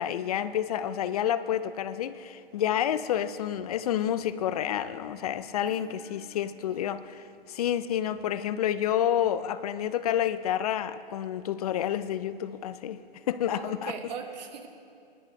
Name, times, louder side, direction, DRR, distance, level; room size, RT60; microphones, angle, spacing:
voice 1, 0.0-13.9, left 10 dB, 40° left, 0.5 m, -29 dB
voice 2, 5.7-6.8 13.5-14.7, right 6 dB, 45° right, 1.2 m, -42 dB
24.0 x 10.5 x 3.3 m
hypercardioid pair, 135°, 30 cm